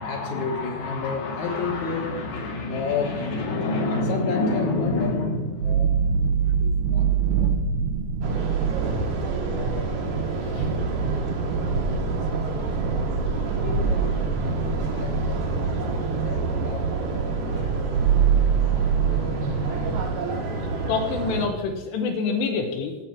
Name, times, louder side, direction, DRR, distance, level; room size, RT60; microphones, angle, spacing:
voice 1, 0.0-7.8 8.3-9.2 9.5-19.9, left 3 dB, 60° left, 2 dB, 2.2 m, -31 dB
sound 1, 5.6-20.0, right 6 dB, 75° right, 1.8 m, -25 dB
sound 2, 8.2-21.5, right 3 dB, 60° right, 2.3 m, -29 dB
voice 2, 20.6-23.0, left 5 dB, 85° left, 3 dB, 3.2 m, -27 dB
17.0 x 7.1 x 4.4 m, 1.1 s
omnidirectional pair, 4.8 m